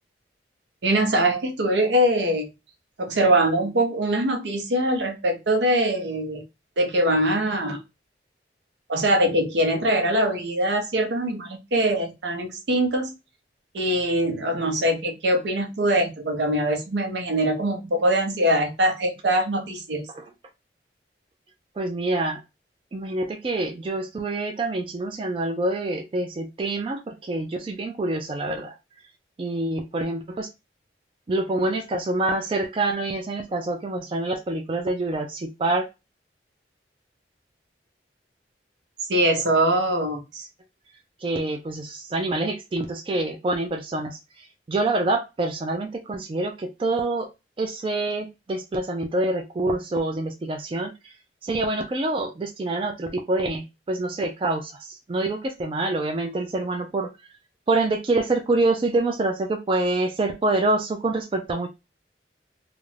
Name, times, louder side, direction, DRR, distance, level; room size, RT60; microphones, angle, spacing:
voice 1, 0.8-2.5 3.0-6.4 6.8-7.8 8.9-13.1 13.7-20.1 39.1-40.5, right 1 dB, 80° right, 4 dB, 0.6 m, -23 dB
voice 2, 21.8-22.4 22.9-28.7 29.4-30.5 31.3-35.9 41.2-47.3 47.6-51.1 51.4-57.1 57.7-61.7, right 2 dB, 30° right, 4 dB, 0.3 m, -26 dB
2.4 x 2.1 x 3.1 m, 0.25 s
head